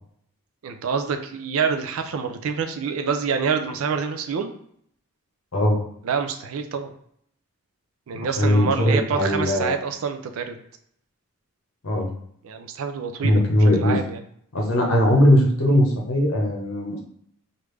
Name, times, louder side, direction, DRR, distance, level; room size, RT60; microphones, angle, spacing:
voice 1, 0.6-4.5 6.0-6.9 8.1-10.6 12.4-14.2, right 6 dB, 70° right, 7 dB, 0.4 m, -27 dB
voice 2, 8.4-9.7 11.8-12.1 13.2-14.0 14.5-17.0, left 1 dB, 70° left, 0 dB, 0.8 m, -19 dB
3.3 x 2.4 x 3.2 m, 0.67 s
head